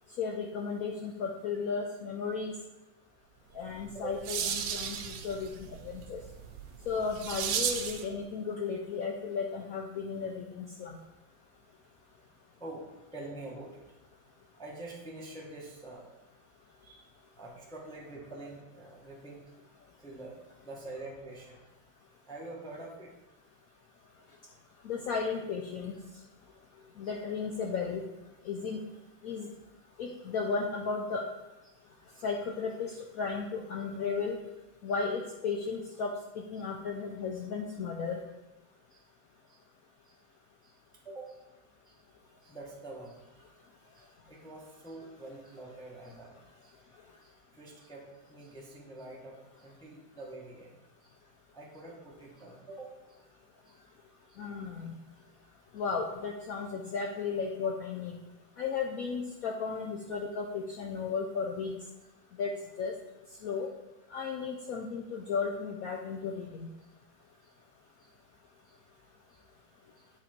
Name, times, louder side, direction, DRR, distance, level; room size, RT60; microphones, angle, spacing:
voice 1, 0.2-2.5 3.6-5.5 5.8-6.2 6.9-10.9 24.8-26.0 27.0-28.0 28.5-28.8 29.2-29.5 30.0-31.2 32.2-34.4 34.8-38.2 54.4-54.9 55.7-58.1 58.6-61.7 62.4-62.5 62.8-62.9 63.4-63.7 64.1-66.7, left 5 dB, 70° left, 1 dB, 0.8 m, -34 dB
voice 2, 3.4-4.1 12.6-12.8 13.1-13.8 14.6-16.1 16.8-17.1 17.4-19.4 20.0-21.6 22.3-23.1 27.0-27.1 30.1-30.2 31.6-31.8 32.1-32.2 36.6-36.7 38.9-39.0 39.5-39.6 40.0-40.2 40.6-40.7 41.0-41.4 41.8-42.0 42.4-43.4 43.9-46.4 46.6-46.8 47.2-51.1 51.5-53.2 53.6-53.8 54.3-54.4 57.6-57.7 58.9-59.0 67.4-67.5 68.0-68.1 68.6-68.8 69.3-69.4 70.0-70.1, right 2 dB, 5° left, -3 dB, 0.9 m, -46 dB
sound 1, 3.7-8.1, right 8 dB, 75° right, 1.2 m, -35 dB
8.8 x 4.2 x 4.4 m, 1.0 s
omnidirectional pair, 2.1 m